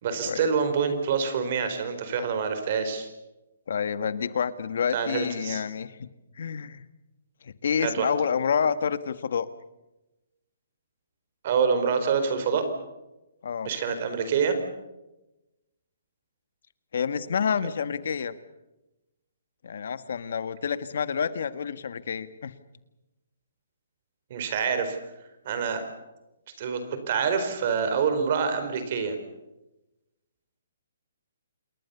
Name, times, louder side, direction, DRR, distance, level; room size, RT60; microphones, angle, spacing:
voice 1, 0.0-3.1 4.9-5.6 7.8-8.1 11.4-12.7 13.6-14.6 24.3-25.0 25.4-25.8 26.6-29.2, right 6 dB, 40° right, 9 dB, 4.3 m, -26 dB
voice 2, 3.7-6.1 6.4-6.8 7.4-9.5 13.4-13.7 16.9-18.3 19.6-22.5, left 7 dB, 60° left, 13 dB, 1.5 m, -28 dB
28.0 x 20.5 x 6.9 m, 0.98 s
hypercardioid pair, 170°, 0 cm